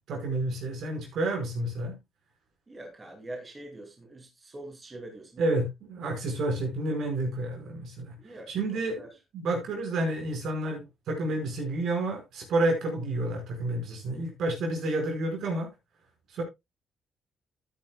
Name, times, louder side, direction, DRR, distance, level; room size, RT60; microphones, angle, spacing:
voice 1, 0.1-2.0 5.4-5.6 5.9-8.1 8.5-9.0 9.3-15.7 16.3-16.4, right 2 dB, 75° right, 5.2 m, -30 dB
voice 2, 2.7-5.6 8.2-9.1, right 1 dB, 25° right, 2.7 m, -44 dB
14.0 x 9.7 x 2.3 m
cardioid pair, 90°, 0 cm